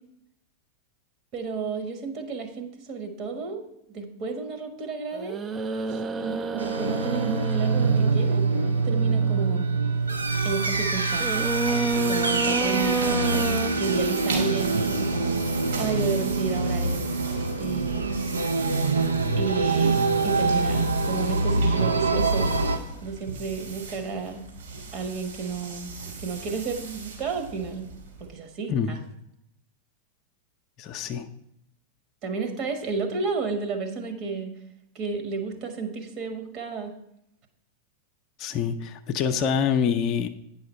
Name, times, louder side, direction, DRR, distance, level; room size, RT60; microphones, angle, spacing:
voice 1, 1.3-5.4 5.9-8.4 8.8-9.6 10.4-11.4 12.1-17.1 17.6-18.2 19.4-22.5 23.0-24.4 24.9-25.9 26.2-27.9 28.2-29.0 32.2-34.5 34.9-36.9, right 4 dB, 40° right, 6 dB, 1.3 m, -32 dB
sound 1, 5.1-10.0 11.2-13.7, right 3 dB, 20° right, 0.4 m, -30 dB
sound 2, 6.6-22.8, right 3 dB, 80° right, 0.6 m, -25 dB
sound 3, 9.9-28.4, right 4 dB, 60° right, 2.6 m, -39 dB
voice 2, 30.8-31.3 38.4-40.3, left 7 dB, 40° left, 7 dB, 0.5 m, -26 dB
9.3 x 5.7 x 4.3 m, 0.78 s
figure-of-eight pair, 90°, 0 cm